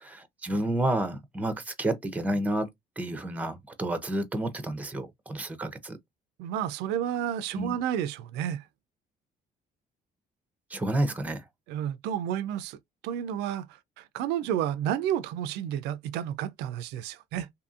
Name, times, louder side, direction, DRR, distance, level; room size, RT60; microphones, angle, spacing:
voice 1, 0.0-2.7 3.0-6.0 7.5-7.7 10.7-11.4, right 1 dB, 10° right, 0.6 m, -30 dB
voice 2, 6.4-8.6 11.7-12.8 13.0-17.5, right 10 dB, 90° right, 0.4 m, -31 dB
2.7 x 2.6 x 2.4 m
cardioid pair, 110°, 17 cm